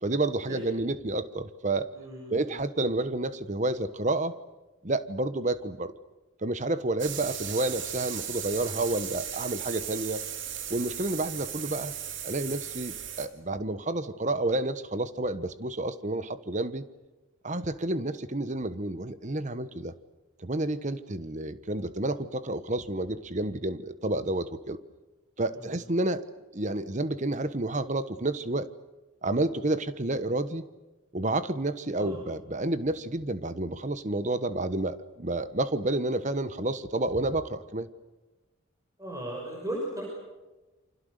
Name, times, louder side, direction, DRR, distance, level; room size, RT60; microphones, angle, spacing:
voice 1, 0.0-1.9 2.3-4.3 4.8-5.9 6.4-10.2 10.7-11.9 12.2-16.8 17.4-19.9 20.4-24.8 25.4-26.2 26.5-28.7 29.2-30.6 31.1-37.9, right 2 dB, 35° right, 13 dB, 1.2 m, -30 dB
voice 2, 1.9-2.6 25.5-25.9 32.0-32.3 39.0-40.0, right 1 dB, 15° right, -1 dB, 5.7 m, -37 dB
sound 1, 7.0-13.3, right 9 dB, 60° right, 2.8 m, -36 dB
28.5 x 25.5 x 6.7 m, 1.1 s
head